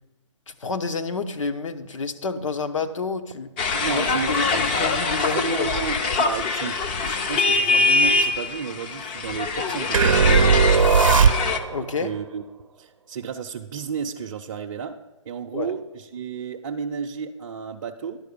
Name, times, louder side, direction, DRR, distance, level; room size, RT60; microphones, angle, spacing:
voice 1, 0.5-3.5 3.8-5.7 11.7-12.1 15.5-15.7, left 4 dB, 75° left, 8 dB, 0.9 m, -29 dB
sound 1, 3.6-11.6, left 4 dB, 20° left, 0.4 m, -23 dB
voice 2, 3.7-5.0 5.2-6.8 7.0-10.7 12.0-12.4 12.8-15.0 15.2-18.2, right 6 dB, 40° right, 0 dB, 0.6 m, -32 dB
sound 2, 9.9-11.8, right 6 dB, 90° right, 0.6 m, -17 dB
10.5 x 4.8 x 6.7 m, 1.1 s
hypercardioid pair, 155°, 16 cm